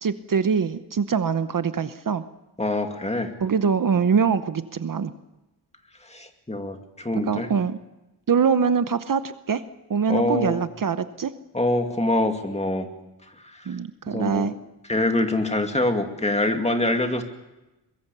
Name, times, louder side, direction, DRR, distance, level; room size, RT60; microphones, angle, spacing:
voice 1, 0.0-2.2 3.4-5.1 7.1-7.8 8.3-9.6 9.9-11.3 13.7-14.5, right 6 dB, 50° right, 12 dB, 0.9 m, -23 dB
voice 2, 2.6-3.3 6.1-7.5 10.1-10.6 11.5-12.9 14.1-14.5 14.9-17.2, left 1 dB, 15° left, 5 dB, 2.3 m, -24 dB
23.0 x 22.0 x 6.9 m, 0.99 s
wide cardioid pair, 140°, 41 cm